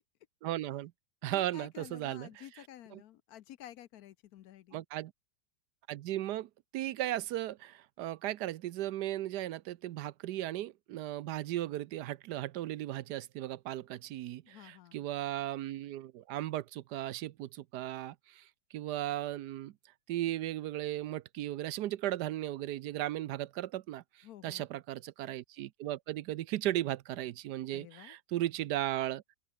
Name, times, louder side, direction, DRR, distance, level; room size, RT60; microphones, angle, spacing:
voice 1, 0.4-0.9 1.2-2.4 2.9-3.0 4.7-5.1 5.9-18.5 18.7-19.7 20.1-29.2, right 14 dB, 80° right, 1.2 m, -36 dB
voice 2, 1.2-4.8 14.4-15.0 24.2-24.7 27.7-28.2, left 12 dB, 70° left, 1.1 m, -51 dB
open air
omnidirectional pair, 1.8 m